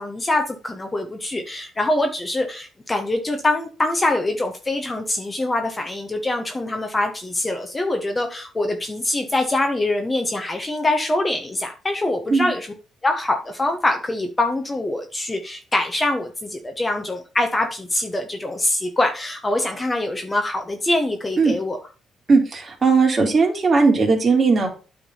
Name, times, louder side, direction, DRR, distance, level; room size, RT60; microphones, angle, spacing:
voice 1, 0.0-12.7 13.0-21.8, left 2 dB, 20° left, 4 dB, 1.2 m, -24 dB
voice 2, 22.3-24.7, right 4 dB, 35° right, 1 dB, 2.8 m, -17 dB
9.2 x 3.8 x 5.5 m, 0.35 s
cardioid pair, 90°, 0 cm